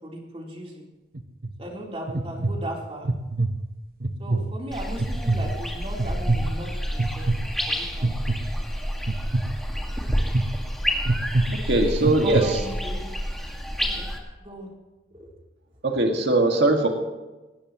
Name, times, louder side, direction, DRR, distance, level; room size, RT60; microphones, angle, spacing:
voice 1, 0.0-0.8 1.6-3.1 4.2-8.5 11.8-13.0 13.8-14.1 14.4-14.7 15.1-15.3, right 1 dB, 30° right, -2 dB, 3.7 m, -37 dB
sound 1, 1.1-1.5 2.1-2.5 3.0-3.5 4.0-4.4 5.0-5.4 6.0-6.4 7.0-7.4 8.0-8.4 9.1-9.4 10.1-10.4 11.1-11.4 12.0-12.4, right 2 dB, 55° right, 1.0 m, -23 dB
sound 2, 4.7-14.2, equal, ahead, 1.9 m, -29 dB
voice 2, 11.5-12.4 15.8-16.9, right 2 dB, 70° right, 2 dB, 2.0 m, -21 dB
19.5 x 18.0 x 3.1 m, 1.1 s
head